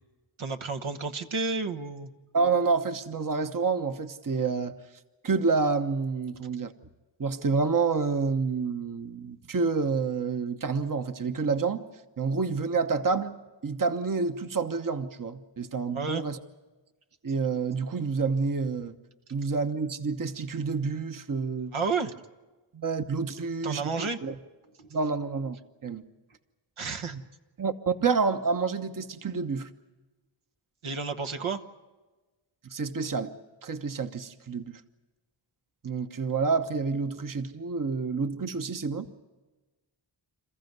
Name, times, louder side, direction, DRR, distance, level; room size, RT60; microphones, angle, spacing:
voice 1, 0.4-2.1 15.9-16.2 21.7-22.1 23.6-24.2 24.8-24.9 26.8-27.2 30.8-31.6, right 4 dB, 75° right, 6 dB, 1.3 m, -31 dB
voice 2, 2.3-4.7 5.2-6.7 7.2-11.8 12.2-13.3 13.6-16.4 17.2-19.0 19.3-21.7 22.7-24.3 24.9-26.0 27.1-27.2 27.6-29.7 32.7-33.3 33.6-34.8 35.8-39.1, right 4 dB, 40° right, 8 dB, 1.1 m, -28 dB
28.0 x 14.5 x 9.5 m, 1.2 s
wide cardioid pair, 60°, 49 cm